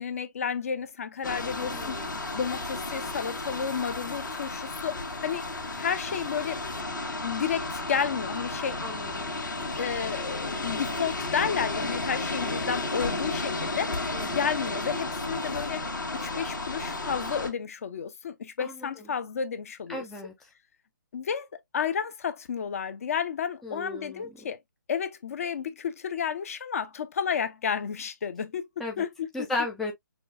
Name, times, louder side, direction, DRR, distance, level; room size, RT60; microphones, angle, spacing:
voice 1, 0.0-5.4 5.8-6.6 7.2-8.8 9.8-15.9 16.1-20.0 21.1-21.5 21.7-24.6 24.9-28.6 29.0-29.5, left 7 dB, 45° left, 0.6 m, -31 dB
sound 1, 1.2-17.5, left 2 dB, 65° left, 1.6 m, -33 dB
voice 2, 1.6-2.2 8.8-9.3 14.1-14.4 18.6-18.9 19.9-20.3 23.6-24.3 28.8-29.0 29.3-29.9, left 2 dB, ahead, 0.3 m, -35 dB
6.0 x 2.3 x 2.4 m
figure-of-eight pair, 140°, 11 cm